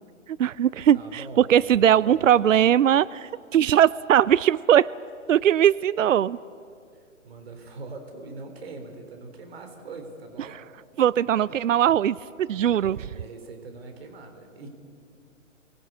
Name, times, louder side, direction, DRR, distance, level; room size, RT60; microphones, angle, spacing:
voice 1, 0.3-4.9 5.3-6.4 11.0-13.0, right 10 dB, 75° right, 19 dB, 0.6 m, -20 dB
voice 2, 0.9-2.3 6.9-10.6 12.5-14.7, right 3 dB, 50° right, 5 dB, 4.1 m, -42 dB
27.0 x 24.0 x 8.4 m, 2.3 s
hypercardioid pair, 160°, 39 cm